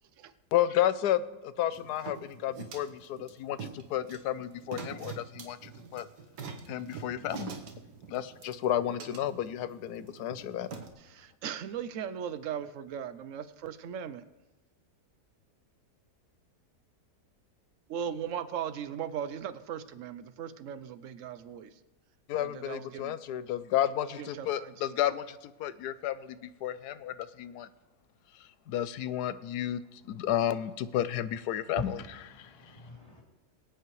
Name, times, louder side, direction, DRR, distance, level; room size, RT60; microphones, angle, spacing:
voice 1, 0.5-6.0 6.7-7.6 8.1-10.7 22.3-27.7 28.7-32.0 32.4-32.5, left 11 dB, 80° left, 14 dB, 1.2 m, -32 dB
sound 1, 1.7-10.9, right 5 dB, 90° right, 1.7 m, -45 dB
voice 2, 11.0-14.2 17.9-21.7 22.4-23.2 24.0-25.0, right 8 dB, 65° right, 12 dB, 0.9 m, -38 dB
voice 3, 31.8-33.2, left 1 dB, 20° left, -4 dB, 3.4 m, -42 dB
23.0 x 8.3 x 3.2 m, 1.1 s
omnidirectional pair, 1.7 m